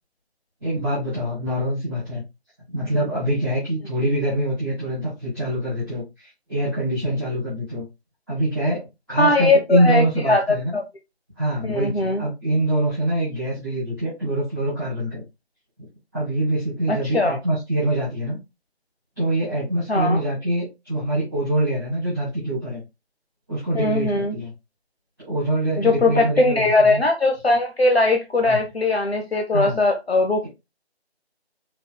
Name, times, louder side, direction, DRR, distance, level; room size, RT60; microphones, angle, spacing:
voice 1, 0.6-2.2 2.7-7.8 8.3-10.8 11.4-15.2 16.1-18.4 19.2-22.8 23.5-24.5 25.2-27.0 28.5-28.6 29.5-29.8, right 1 dB, ahead, 1.2 m, -24 dB
voice 2, 9.2-10.4 10.7-10.8 11.6-12.2 16.9-17.4 19.9-20.2 23.7-24.3 25.8-30.5, left 2 dB, 70° left, 1.0 m, -20 dB
5.6 x 3.8 x 2.3 m
figure-of-eight pair, 165°, 32 cm